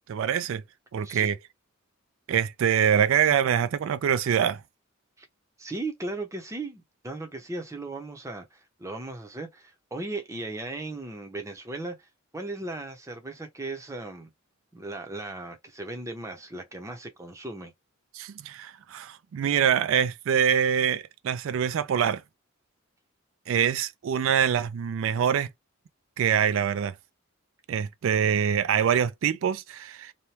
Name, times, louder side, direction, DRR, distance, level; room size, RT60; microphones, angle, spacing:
voice 1, 0.1-0.6 0.9-1.4 2.3-4.6 18.1-22.2 23.5-25.5 26.2-26.9 27.7-30.1, right 8 dB, 65° right, 0.3 m, -24 dB
voice 2, 5.6-12.1 12.3-14.3 14.7-17.7, right 2 dB, 15° right, 0.6 m, -37 dB
2.8 x 2.1 x 3.1 m
head